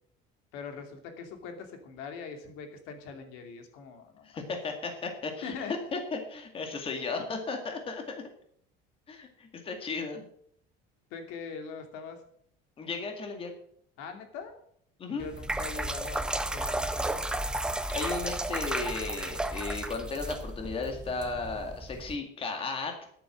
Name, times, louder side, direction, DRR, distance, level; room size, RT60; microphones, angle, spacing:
voice 1, 0.5-4.4 5.4-5.8 11.1-12.2 14.0-14.5 15.1-17.1, left 5 dB, 90° left, 6 dB, 2.7 m, -42 dB
voice 2, 4.2-5.5 5.9-8.0 9.1-10.3 12.8-13.5 15.0-15.3 17.9-22.9, left 4 dB, 25° left, 4 dB, 2.1 m, -35 dB
sound 1, 15.2-22.2, right 1 dB, 5° right, 0.5 m, -33 dB
11.0 x 8.6 x 7.5 m, 0.65 s
cardioid pair, 170°, 21 cm